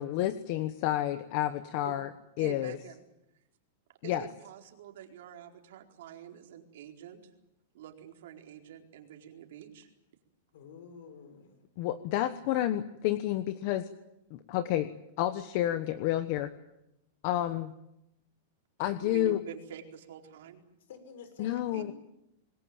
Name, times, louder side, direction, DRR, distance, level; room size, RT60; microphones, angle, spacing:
voice 1, 0.0-2.1 2.4-2.8 4.0-4.3 11.8-13.9 14.3-14.9 15.2-16.5 17.2-17.7 18.8-19.4 21.4-21.9, left 13 dB, 40° left, 11 dB, 1.2 m, -30 dB
voice 2, 2.4-3.0 4.0-7.3 7.7-9.9 19.0-20.6 21.7-21.8, right 10 dB, 65° right, 3 dB, 4.3 m, -46 dB
voice 3, 10.5-11.6 20.9-21.9, left 5 dB, 65° left, 10 dB, 6.0 m, -50 dB
27.0 x 20.5 x 9.0 m, 0.85 s
supercardioid pair, 170°, 0 cm